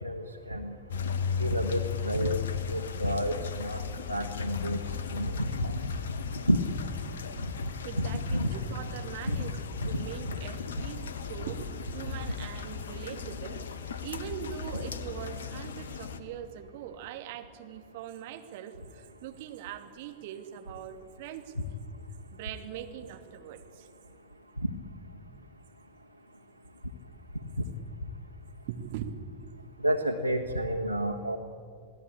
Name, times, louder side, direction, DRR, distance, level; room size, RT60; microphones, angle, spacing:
voice 1, 0.0-0.7 1.4-2.4 2.7-3.8 4.1-4.8 5.1-5.5 6.5-6.6 8.0-8.5 9.3-9.4 9.9-10.0 24.6-24.7 29.8-31.4, equal, 90° left, 4 dB, 1.5 m, -29 dB
sound 1, 0.9-16.2, left 7 dB, 65° left, 1.5 m, -36 dB
voice 2, 7.8-13.6 13.9-21.5 22.3-23.9 28.7-29.1 29.5-29.6, right 10 dB, 50° right, 6 dB, 2.3 m, -42 dB
28.0 x 18.5 x 8.6 m, 2.3 s
figure-of-eight pair, 90°, 0 cm